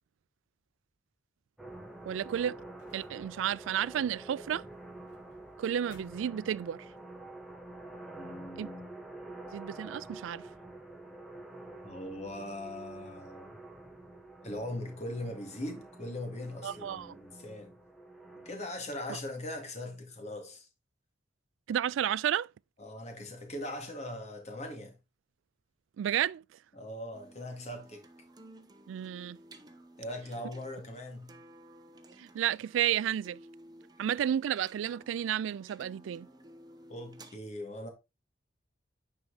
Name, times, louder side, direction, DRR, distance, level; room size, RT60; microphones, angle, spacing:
sound 1, 1.6-18.6, right 2 dB, ahead, 1.1 m, -48 dB
sound 2, 1.7-7.0, equal, 65° left, 2.3 m, -62 dB
voice 1, 2.1-2.6 2.9-4.6 5.6-6.8 8.6-8.7 9.5-10.5 16.6-17.2 21.7-22.5 26.0-26.4 28.9-29.4 32.2-33.4 34.0-36.3, right 10 dB, 90° right, 0.3 m, -32 dB
voice 2, 8.2-8.9 11.8-13.5 14.4-17.7 18.5-20.7 22.8-25.0 26.7-28.0 30.0-31.4 36.9-37.9, left 1 dB, 35° left, 2.1 m, -40 dB
sound 3, 27.1-37.4, right 1 dB, 20° right, 0.9 m, -55 dB
9.7 x 4.6 x 3.9 m
head